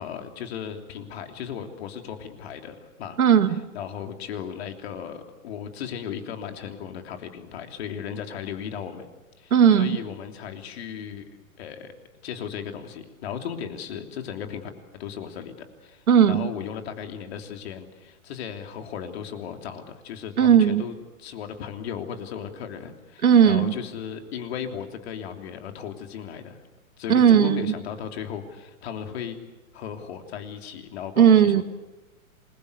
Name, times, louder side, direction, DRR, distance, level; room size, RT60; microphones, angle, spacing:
voice 1, 0.0-3.2 3.5-9.1 9.4-11.2 11.6-11.9 12.2-14.7 15.0-15.5 15.8-20.9 21.2-26.6 27.0-29.4 29.7-31.6, left 8 dB, 45° left, 5 dB, 3.4 m, -36 dB
voice 2, 3.2-3.6 9.5-10.0 16.1-16.5 20.4-20.8 23.2-23.7 27.1-27.7 31.2-31.6, right 8 dB, 85° right, 10 dB, 2.1 m, -17 dB
27.5 x 22.0 x 8.3 m, 1.1 s
hypercardioid pair, 155°, 42 cm